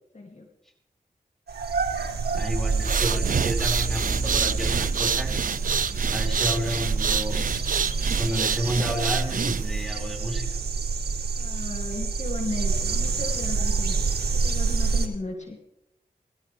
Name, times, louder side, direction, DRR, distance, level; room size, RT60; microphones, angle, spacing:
voice 1, 0.1-0.5 11.4-15.6, left 2 dB, 45° left, 2 dB, 2.6 m, -36 dB
sound 1, 1.5-15.1, right 4 dB, 85° right, 2.1 m, -27 dB
sound 2, 1.7-10.3, right 1 dB, 25° right, 5.0 m, -37 dB
voice 2, 2.3-5.4 6.1-7.4 8.2-10.5, equal, ahead, 1 dB, 5.3 m, -30 dB
sound 3, 2.7-9.8, right 6 dB, 60° right, 0.5 m, -28 dB
20.0 x 16.5 x 3.4 m, 0.80 s
cardioid pair, 40°, 16 cm